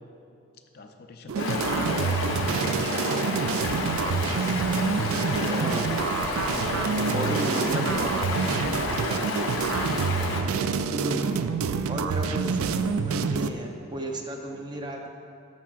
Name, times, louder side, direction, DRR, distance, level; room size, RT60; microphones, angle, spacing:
voice 1, 0.7-5.9 6.5-9.7 14.5-14.8, left 3 dB, 45° left, 5 dB, 0.4 m, -40 dB
sound 1, 1.3-13.5, right 5 dB, 75° right, 0.3 m, -27 dB
Stream, 1.4-10.4, left 2 dB, 75° left, 0.8 m, -30 dB
voice 2, 7.1-8.2 10.9-11.4 11.9-15.1, right 1 dB, 20° right, 2 dB, 0.5 m, -33 dB
11.5 x 7.2 x 2.4 m, 2.6 s
head